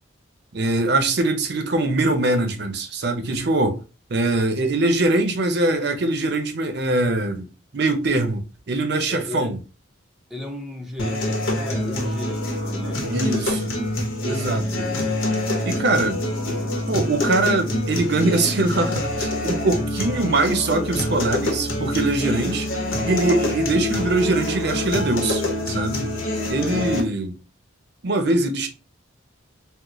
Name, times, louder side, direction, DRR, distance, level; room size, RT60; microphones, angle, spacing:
voice 1, 0.5-3.8 4.1-7.5 7.7-9.6 13.1-13.6 14.2-14.9 15.6-22.7 23.0-26.1 26.5-27.3 28.0-28.7, right 2 dB, 55° right, 0.6 m, -22 dB
voice 2, 9.1-9.5 10.3-13.6 26.5-27.0, left 1 dB, ahead, 0.5 m, -35 dB
sound 1, 11.0-27.0, left 1 dB, 80° left, 0.9 m, -26 dB
3.9 x 2.0 x 2.9 m
head